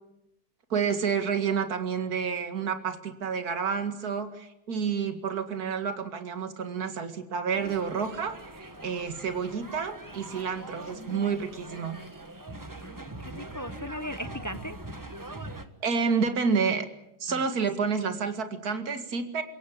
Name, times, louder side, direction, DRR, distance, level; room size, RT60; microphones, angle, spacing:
voice 1, 0.7-12.0 15.8-16.9 17.2-19.4, right 6 dB, 55° right, 8 dB, 2.4 m, -29 dB
sound 1, 7.5-15.7, right 1 dB, 10° right, 1.3 m, -42 dB
voice 2, 12.8-14.8 17.3-17.4, left 1 dB, 25° left, 11 dB, 0.4 m, -38 dB
28.5 x 17.0 x 8.7 m, 0.83 s
omnidirectional pair, 1.9 m